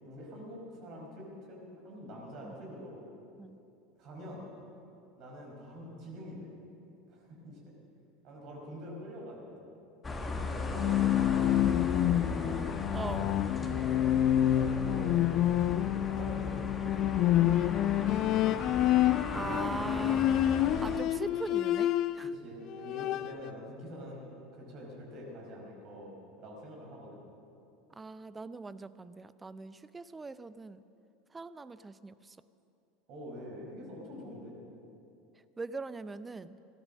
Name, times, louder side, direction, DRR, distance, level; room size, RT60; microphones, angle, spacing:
voice 1, 0.0-1.6 1.8-3.0 4.0-4.5 5.2-6.5 7.1-7.6 8.2-9.7 10.4-12.6 13.3-14.0 14.3-15.3 15.7-18.7 19.3-20.0 22.2-26.1 26.4-27.2 33.1-34.6, equal, 50° right, -2 dB, 4.9 m, -46 dB
sound 1, 10.0-21.0, left 3 dB, 20° left, 1.4 m, -37 dB
Bowed string instrument, 10.6-22.4 22.7-23.5, left 12 dB, 50° left, 0.4 m, -28 dB
voice 2, 12.9-13.3 19.3-22.3 28.0-30.8 31.3-32.4 35.6-36.6, right 3 dB, 15° right, 15 dB, 0.6 m, -41 dB
17.0 x 12.5 x 6.4 m, 2.7 s
figure-of-eight pair, 75°, 0 cm